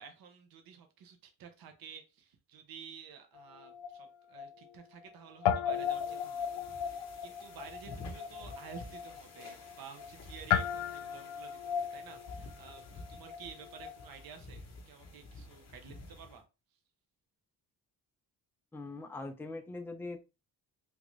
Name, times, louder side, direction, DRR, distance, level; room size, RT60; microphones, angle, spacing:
voice 1, 0.0-16.4, right 7 dB, 65° right, 6 dB, 0.8 m, -52 dB
Guitar, 3.3-5.1 5.4-14.1, left 8 dB, 90° left, 0.6 m, -36 dB
sound 1, 5.7-16.4, left 3 dB, 40° left, 0.8 m, -51 dB
voice 2, 18.7-20.2, left 2 dB, 5° left, 5 dB, 0.4 m, -41 dB
3.5 x 2.5 x 3.1 m, 0.28 s
cardioid pair, 140°, 39 cm